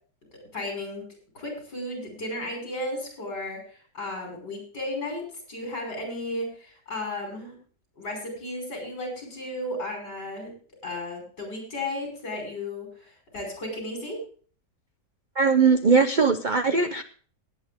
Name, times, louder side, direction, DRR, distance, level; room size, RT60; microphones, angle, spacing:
voice 1, 0.5-1.0 1.3-7.5 8.0-10.5 10.8-14.2, left 1 dB, 80° left, 1 dB, 6.1 m, -34 dB
voice 2, 15.4-17.0, right 5 dB, 65° right, 9 dB, 0.4 m, -20 dB
18.5 x 8.7 x 3.5 m, 0.43 s
omnidirectional pair, 1.8 m